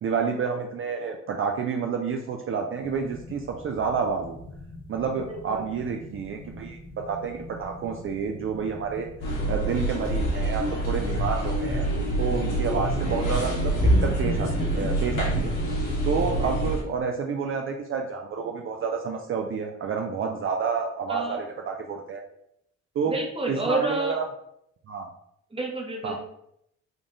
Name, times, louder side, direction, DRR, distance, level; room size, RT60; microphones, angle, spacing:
voice 1, 0.0-4.4 4.9-9.1 9.5-15.5 16.0-22.2 23.0-23.2 23.5-24.2 24.9-25.1 26.0-26.2, right 5 dB, 45° right, 3 dB, 0.4 m, -29 dB
sound 1, 2.8-15.0, equal, 20° left, 0.9 m, -44 dB
voice 2, 5.3-5.7 21.1-21.4 23.1-24.2 25.5-26.2, right 2 dB, 20° right, 1 dB, 0.9 m, -29 dB
sound 2, 9.2-16.8, right 1 dB, 90° left, 1.2 m, -25 dB
3.7 x 2.4 x 3.7 m, 0.77 s
cardioid pair, 90°, 30 cm